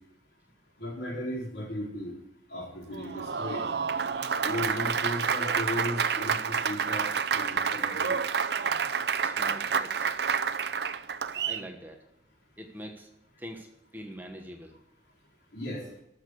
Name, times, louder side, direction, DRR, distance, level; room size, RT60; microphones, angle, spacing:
voice 1, 0.8-2.1 2.5-3.6 4.4-8.2 15.5-15.8, left 1 dB, 70° left, -4 dB, 4.7 m, -36 dB
Applause, 2.9-11.7, right 6 dB, 65° right, 0.6 m, -29 dB
voice 2, 9.2-10.1 11.3-12.0 12.6-13.1 13.4-13.7 13.9-14.7, equal, 10° right, 3 dB, 1.2 m, -43 dB
13.0 x 6.6 x 8.4 m, 0.81 s
head